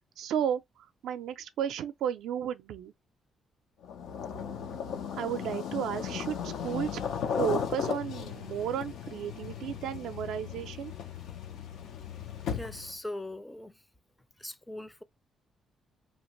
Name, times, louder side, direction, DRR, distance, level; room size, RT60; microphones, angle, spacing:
voice 1, 0.2-2.9 5.2-7.0 7.3-10.9, right 9 dB, 80° right, 0.4 m, -33 dB
sound 1, 3.8-13.0, left 7 dB, 80° left, 0.6 m, -36 dB
voice 2, 12.5-13.7 14.4-15.0, left 1 dB, 10° left, 0.4 m, -40 dB
2.8 x 2.5 x 3.0 m
cardioid pair, 90°, 0 cm